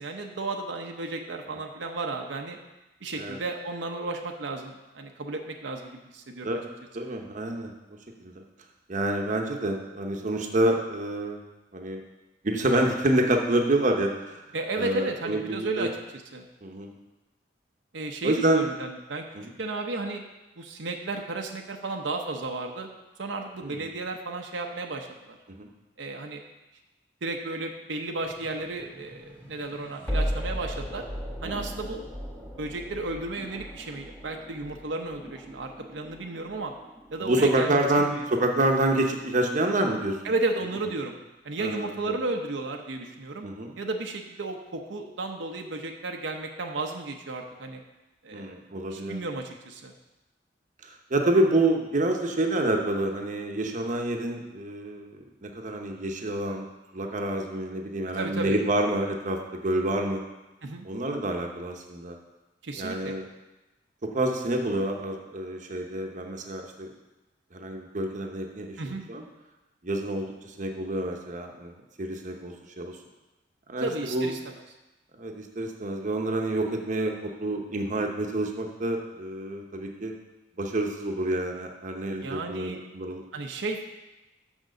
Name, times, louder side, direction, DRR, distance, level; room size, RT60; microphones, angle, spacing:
voice 1, 0.0-2.6 3.0-6.6 14.5-16.5 17.9-20.2 20.6-22.9 23.2-25.4 26.0-26.4 27.2-31.0 31.4-32.0 32.6-36.7 37.1-38.2 40.2-41.2 41.4-43.5 43.8-47.8 48.2-48.6 48.9-49.9 58.2-58.6 60.6-60.9 62.6-63.1 68.8-69.0 73.8-74.5 82.1-82.8 83.3-83.8, right 2 dB, 80° right, 3 dB, 0.8 m, -33 dB
voice 2, 6.9-7.7 8.2-8.3 8.9-11.4 11.7-12.0 12.4-14.4 14.8-15.9 16.6-16.9 18.2-18.6 19.3-19.5 23.6-23.8 25.6-25.7 31.4-31.6 37.2-40.2 41.6-42.1 43.4-43.7 48.3-49.2 50.8-56.7 56.9-60.2 60.8-62.2 62.8-63.2 64.0-66.9 67.5-68.8 69.1-69.2 69.8-71.7 72.0-73.0 73.7-74.3 75.2-80.1 80.6-83.2, right 1 dB, 45° right, 2 dB, 0.9 m, -28 dB
sound 1, 28.2-39.3, equal, 10° left, 1.6 m, -37 dB
6.4 x 6.0 x 6.5 m, 1.1 s
head